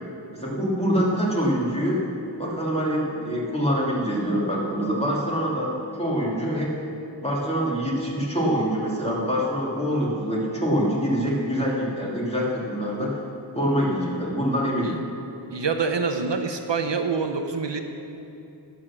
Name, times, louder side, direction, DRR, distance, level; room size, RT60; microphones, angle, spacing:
voice 1, 0.3-2.0 2.4-6.7 7.2-13.1 13.5-15.0, equal, 15° left, -5 dB, 2.9 m, -25 dB
voice 2, 15.5-17.8, right 4 dB, 65° right, 6 dB, 0.7 m, -26 dB
12.0 x 8.5 x 6.1 m, 2.9 s
wide cardioid pair, 40°, 46 cm